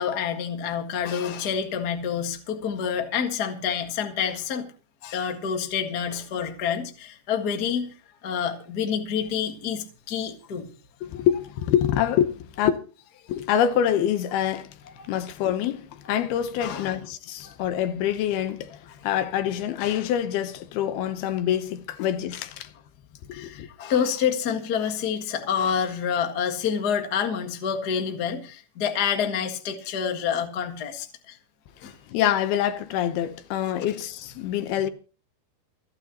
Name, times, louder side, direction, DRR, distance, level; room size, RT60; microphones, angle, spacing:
voice 1, 0.0-4.7 5.0-7.9 8.2-10.7 15.0-15.1 16.6-17.0 17.4-17.5 23.3-31.4 31.8-31.9, left 7 dB, 50° left, 1.2 m, -28 dB
voice 2, 11.0-12.7 13.3-14.8 15.1-22.7 23.4-23.7 31.8-34.9, left 10 dB, 75° left, 2.9 m, -26 dB
28.0 x 9.8 x 2.9 m
omnidirectional pair, 4.6 m